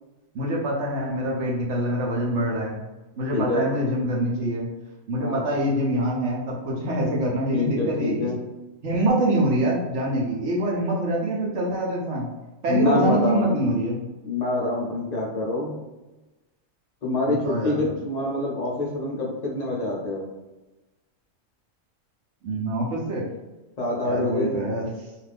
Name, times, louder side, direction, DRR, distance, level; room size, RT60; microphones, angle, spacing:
voice 1, 0.3-2.8 3.2-4.7 5.1-8.3 8.8-12.2 12.6-14.1 17.3-17.8 22.4-23.3 24.0-24.9, right 1 dB, 65° right, -3 dB, 1.0 m, -25 dB
voice 2, 3.3-3.7 5.2-5.4 7.5-8.4 12.7-13.6 14.2-15.8 17.0-20.3 23.8-24.6, left 2 dB, 50° left, -3 dB, 0.5 m, -26 dB
2.5 x 2.4 x 3.3 m, 1.1 s
omnidirectional pair, 1.4 m